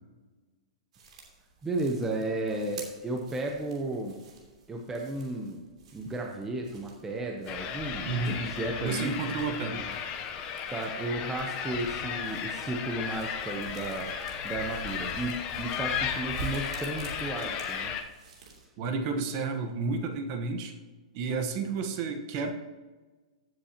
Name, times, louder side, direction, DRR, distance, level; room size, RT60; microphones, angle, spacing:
sound 1, 0.9-18.7, right 5 dB, 70° right, 3.0 m, -49 dB
voice 1, 1.6-4.2 4.7-5.6 5.9-9.1 10.7-14.1 14.4-17.9, right 2 dB, 10° right, 1 dB, 0.8 m, -33 dB
sound 2, 7.5-18.0, left 7 dB, 25° left, 0.8 m, -35 dB
voice 2, 8.0-8.4 8.8-9.9 18.8-20.7 21.1-22.5, right 4 dB, 35° right, 5 dB, 1.2 m, -31 dB
16.0 x 7.6 x 2.9 m, 1.3 s
hypercardioid pair, 160°, 4 cm